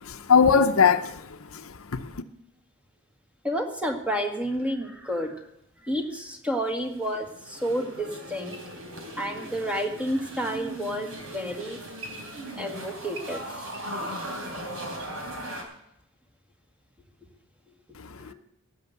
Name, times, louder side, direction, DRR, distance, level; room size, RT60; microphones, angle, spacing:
voice 1, 0.0-1.2 1.5-2.1 18.0-18.3, left 6 dB, 70° left, 0.7 m, -21 dB
voice 2, 3.4-5.4 5.8-8.6 9.2-11.8 12.6-13.7 15.2-15.7 18.2-18.3, equal, 5° right, 1.7 m, -30 dB
sound 1, 6.7-15.6, right 1 dB, 65° right, 3.6 m, -38 dB
17.0 x 6.4 x 7.9 m
head